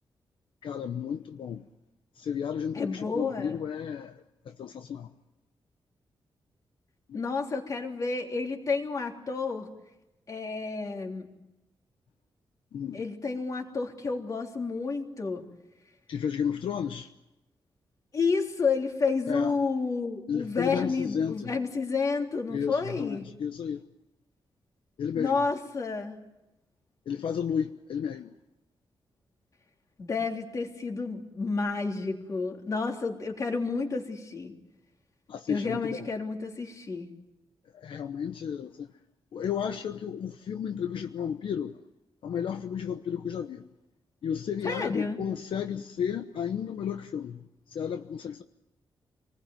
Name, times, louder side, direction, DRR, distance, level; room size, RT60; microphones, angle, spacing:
voice 1, 0.6-1.6 2.1-5.1 7.1-7.2 12.7-13.0 16.1-17.1 19.3-19.6 20.3-21.5 22.5-23.8 25.0-25.4 27.1-28.3 35.3-36.1 37.7-38.9 39.3-41.8 42.2-43.7 44.2-48.4, left 8 dB, 75° left, 1.0 m, -33 dB
voice 2, 2.7-3.6 7.1-9.7 10.3-11.3 12.9-15.4 18.1-23.3 25.1-26.2 30.0-34.5 35.5-37.1 44.6-45.2, left 4 dB, 40° left, 3.4 m, -30 dB
28.0 x 20.0 x 9.2 m
wide cardioid pair, 165°, 9 cm